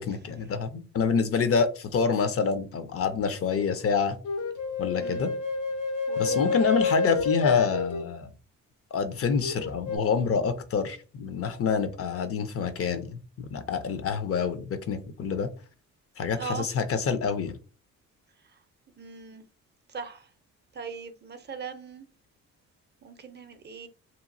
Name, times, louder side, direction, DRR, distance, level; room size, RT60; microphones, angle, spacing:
voice 1, 0.0-4.2 4.8-5.3 6.2-8.3 8.9-15.5 16.2-17.5, left 5 dB, 50° left, 0.5 m, -27 dB
sound 1, 4.2-8.0 9.4-10.0, left 4 dB, 85° left, 1.0 m, -28 dB
voice 2, 4.9-5.2 6.1-6.6 16.4-16.7 19.0-19.4 19.9-20.3 20.7-22.0 23.0-23.9, right 5 dB, 35° right, 0.5 m, -39 dB
2.9 x 2.3 x 2.6 m
cardioid pair, 90°, 30 cm